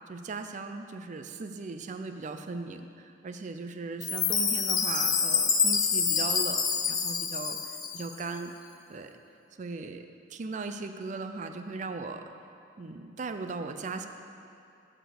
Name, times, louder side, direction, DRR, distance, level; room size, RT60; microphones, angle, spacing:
voice 1, 0.1-8.5 8.9-9.1 9.6-12.2 12.8-14.1, right 3 dB, 40° right, 7 dB, 0.4 m, -38 dB
Chime, 4.0-8.2, left 6 dB, 20° left, 0.5 m, -27 dB
6.9 x 6.0 x 6.4 m, 2.6 s
head